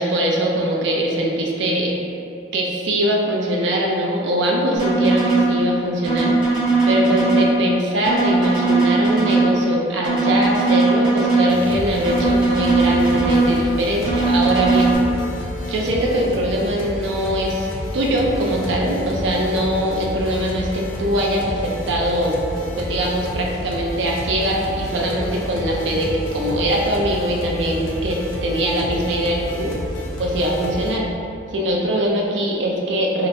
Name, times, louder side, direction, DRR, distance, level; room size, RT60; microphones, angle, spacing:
voice 1, 0.0-2.0 2.5-6.4 6.9-15.0 15.7-17.7 17.9-22.4 22.8-29.7 30.2-31.1 31.5-33.3, right 1 dB, 70° right, -1 dB, 0.4 m, -22 dB
sound 1, 4.8-5.5 6.0-7.5 8.0-9.5 10.0-11.5 12.0-13.5 14.0-14.9, right 3 dB, 25° right, 0.7 m, -19 dB
sound 2, 11.5-31.0, left 1 dB, 85° left, 0.5 m, -30 dB
3.2 x 2.9 x 2.6 m, 2.6 s
head